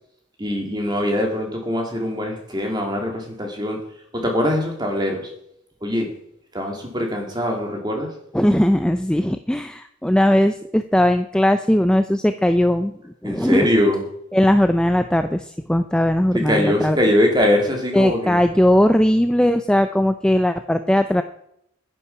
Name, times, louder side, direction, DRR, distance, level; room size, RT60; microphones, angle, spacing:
voice 1, 0.4-3.8 4.1-5.3 5.8-6.1 6.5-8.1 13.2-14.0 16.5-18.4, left 1 dB, 20° right, 2 dB, 2.6 m, -22 dB
voice 2, 8.3-13.7 14.3-17.0 17.9-21.2, left 1 dB, 5° left, 9 dB, 0.4 m, -18 dB
10.0 x 9.9 x 5.8 m, 0.74 s
head